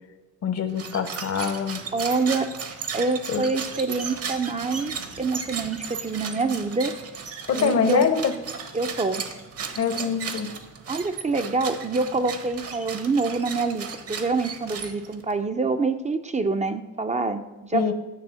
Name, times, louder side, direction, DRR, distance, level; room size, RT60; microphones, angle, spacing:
voice 1, 0.4-1.8 3.3-3.4 7.5-8.3 9.7-10.5 17.7-17.9, left 6 dB, 55° left, 10 dB, 0.9 m, -24 dB
sound 1, 0.7-15.3, right 6 dB, 50° right, 1.1 m, -36 dB
voice 2, 1.9-2.5 2.9-4.9 5.2-6.9 7.6-8.1 8.7-9.2 10.9-17.9, right 3 dB, 25° right, 8 dB, 0.5 m, -26 dB
9.7 x 3.6 x 6.9 m, 1.1 s
cardioid pair, 90°, 30 cm